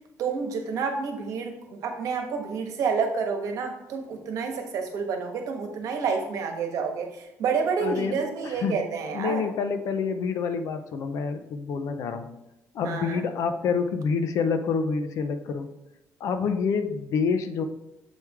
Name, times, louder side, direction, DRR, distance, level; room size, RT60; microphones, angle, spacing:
voice 1, 0.2-9.4 12.8-13.2, right 5 dB, 70° right, 4 dB, 1.3 m, -29 dB
voice 2, 7.8-8.8 9.1-12.3 12.7-15.7 16.2-17.6, left 5 dB, 65° left, 9 dB, 0.7 m, -27 dB
7.3 x 4.7 x 3.5 m, 0.96 s
cardioid pair, 155°, 6 cm